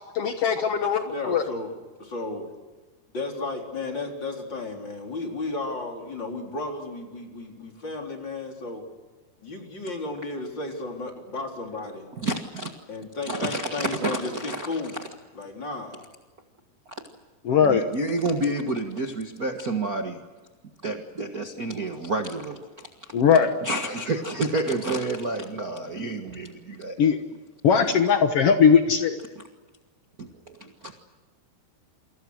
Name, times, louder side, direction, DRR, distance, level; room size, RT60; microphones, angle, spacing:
voice 1, 0.1-1.4 17.4-17.8 23.1-23.5 27.0-27.2 27.6-29.2, left 7 dB, 80° left, 6 dB, 1.3 m, -20 dB
voice 2, 1.0-1.7 2.0-2.5 3.1-8.8 9.4-12.1 12.9-15.0 15.3-16.0, left 3 dB, 30° left, 2 dB, 4.3 m, -33 dB
voice 3, 12.2-12.7 13.3-14.8 17.6-20.2 20.8-23.1 23.6-27.0 30.2-30.9, right 2 dB, 75° right, 2 dB, 0.8 m, -29 dB
29.0 x 26.0 x 6.4 m, 1.3 s
omnidirectional pair, 4.7 m